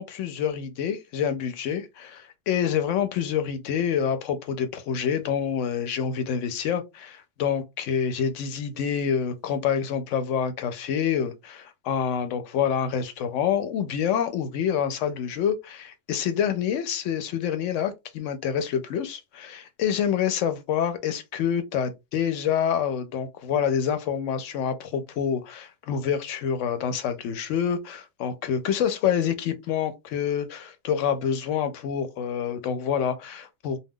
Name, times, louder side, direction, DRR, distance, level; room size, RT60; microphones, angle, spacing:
voice 1, 0.0-33.8, left 8 dB, 80° left, 0.9 m, -27 dB
2.2 x 2.2 x 3.5 m
omnidirectional pair, 1.3 m